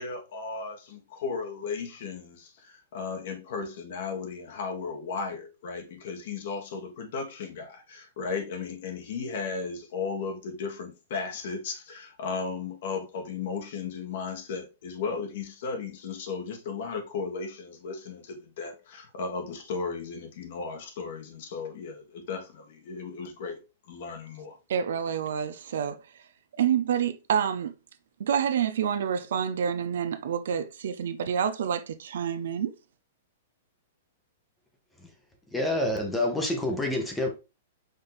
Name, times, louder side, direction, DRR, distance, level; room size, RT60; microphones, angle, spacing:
voice 1, 0.0-23.6 23.9-24.5, left 5 dB, 60° left, 1.2 m, -35 dB
voice 2, 24.7-26.0 26.6-27.7 28.2-32.7, right 8 dB, 75° right, 0.5 m, -28 dB
voice 3, 35.5-37.3, left 1 dB, 5° left, 0.7 m, -27 dB
5.2 x 2.6 x 3.8 m
hypercardioid pair, 160°, 0 cm